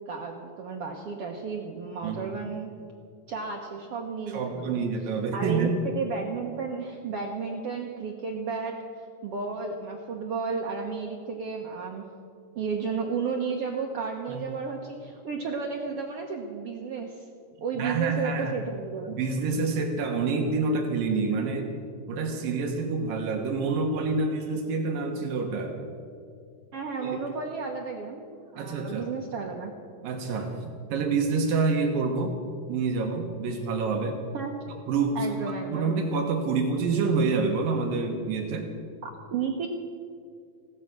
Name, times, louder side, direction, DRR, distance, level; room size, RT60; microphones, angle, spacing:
voice 1, 0.1-2.7 3.3-4.8 5.3-12.0 12.5-17.3 17.6-19.2 26.7-28.2 28.5-29.7 34.3-34.5 35.1-35.9 39.0-39.7, right 5 dB, 90° right, 1 dB, 1.3 m, -33 dB
voice 2, 4.3-5.7 14.3-14.4 17.8-18.5 19.1-21.7 22.1-25.8 27.0-27.2 28.6-29.1 30.0-32.4 32.7-34.2 34.9-35.3 35.7-38.7, right 4 dB, 75° right, 3 dB, 2.9 m, -27 dB
16.0 x 13.0 x 6.1 m, 2.3 s
omnidirectional pair, 4.2 m